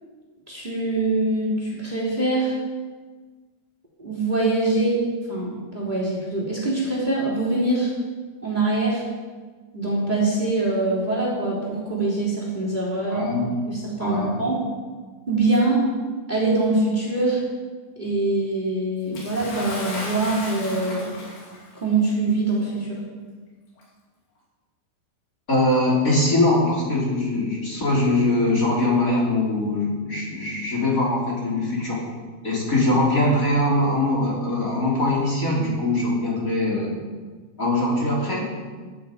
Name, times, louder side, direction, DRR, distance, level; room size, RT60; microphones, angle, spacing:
voice 1, 0.5-2.6 4.0-7.9 8.4-9.0 9.7-13.3 13.7-14.6 15.3-15.9 16.3-17.4 18.0-21.1 21.7-23.0, right 2 dB, 10° right, -6 dB, 3.6 m, -23 dB
voice 2, 13.1-13.5 14.0-14.4 25.5-32.0 32.4-36.9 37.6-38.4, left 2 dB, 20° left, -4 dB, 3.4 m, -22 dB
Bathtub (filling or washing) / Splash splatter, 19.1-21.7 22.7-22.8 23.8-23.9, left 2 dB, 80° left, 4.9 m, -35 dB
16.0 x 12.0 x 5.1 m, 1.4 s
omnidirectional pair, 4.6 m